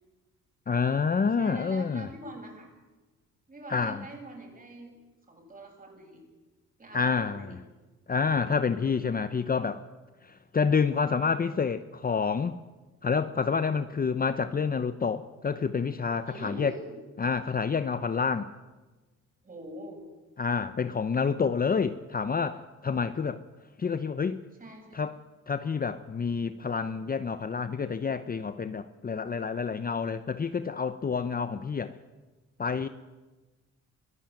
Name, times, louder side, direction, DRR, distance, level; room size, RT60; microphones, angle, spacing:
voice 1, 0.7-2.1 3.7-4.0 6.9-7.6 8.1-9.8 10.2-12.6 13.0-16.7 17.2-18.5 20.4-23.4 23.8-24.4 24.9-25.1 25.5-32.0 32.6-32.9, left 5 dB, 30° left, 0.8 m, -28 dB
voice 2, 1.4-2.7 3.5-4.9 5.3-6.2 6.8-7.6 16.2-17.0 19.4-20.1 24.6-25.0, right 1 dB, 30° right, 7.9 m, -44 dB
22.5 x 15.5 x 9.0 m
cardioid pair, 90°, 30 cm